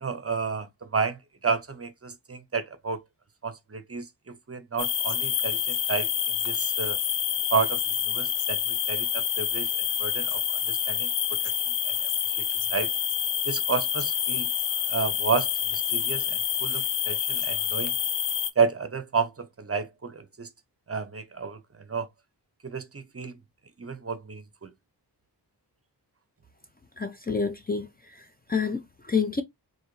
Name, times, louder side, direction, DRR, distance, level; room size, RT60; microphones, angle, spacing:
voice 1, 0.0-3.0 3.4-6.1 6.4-7.0 7.5-7.8 8.1-10.4 10.7-11.4 11.8-12.1 12.7-12.9 13.4-14.5 14.9-17.9 18.6-20.5 20.9-21.6 21.9-22.1 22.6-23.3 23.8-24.7, right 5 dB, 35° right, 0.6 m, -31 dB
sound 1, 4.8-18.5, left 9 dB, 85° left, 0.6 m, -27 dB
voice 2, 27.0-27.9 28.1-29.4, left 5 dB, 25° left, 0.5 m, -28 dB
3.9 x 2.7 x 3.0 m
wide cardioid pair, 105°, 41 cm